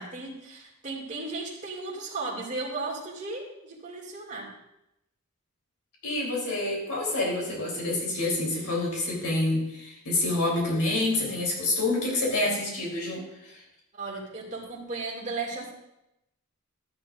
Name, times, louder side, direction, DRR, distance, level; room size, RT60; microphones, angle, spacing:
voice 1, 0.0-4.5 14.0-15.7, right 3 dB, 35° right, -4 dB, 2.3 m, -35 dB
voice 2, 6.0-13.6, left 2 dB, 90° left, -3 dB, 3.5 m, -27 dB
13.0 x 10.5 x 2.5 m, 0.84 s
head